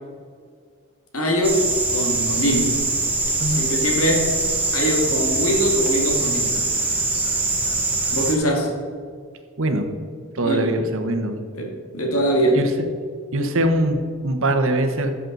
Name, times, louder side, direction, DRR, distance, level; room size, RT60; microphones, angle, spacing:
voice 1, 1.1-1.7 1.9-2.8 3.6-4.4 4.7-6.6 8.1-8.8 10.4-10.7 11.6-12.6, equal, 70° left, 1 dB, 2.4 m, -22 dB
sound 1, 1.4-8.3, right 2 dB, 10° right, 1.8 m, -23 dB
voice 2, 10.3-11.3 12.5-12.7 13.3-15.1, right 1 dB, 60° right, 6 dB, 1.2 m, -22 dB
14.0 x 7.5 x 4.0 m, 2.1 s
head